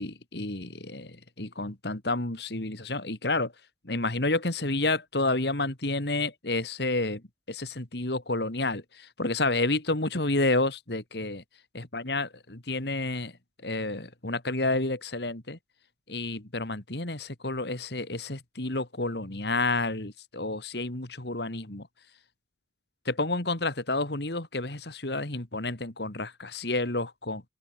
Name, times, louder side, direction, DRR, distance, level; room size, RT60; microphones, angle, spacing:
voice 1, 0.0-3.5 3.8-7.2 7.5-11.4 11.7-13.3 13.6-15.6 16.1-21.9 23.1-27.4, left 2 dB, 65° left, 2.6 m, -30 dB
open air
head